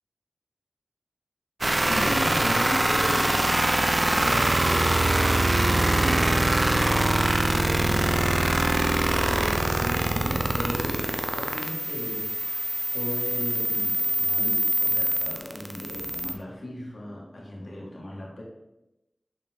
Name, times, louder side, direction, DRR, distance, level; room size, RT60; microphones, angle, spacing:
sound 1, 1.6-16.3, right 1 dB, 40° right, 0.7 m, -24 dB
voice 1, 1.9-3.5 3.8-5.0 5.5-6.5 7.5-8.8 9.2-11.0 11.4-18.4, left 1 dB, 75° left, -4 dB, 2.0 m, -36 dB
6.5 x 5.3 x 3.7 m, 0.94 s
wide cardioid pair, 45°, 0 cm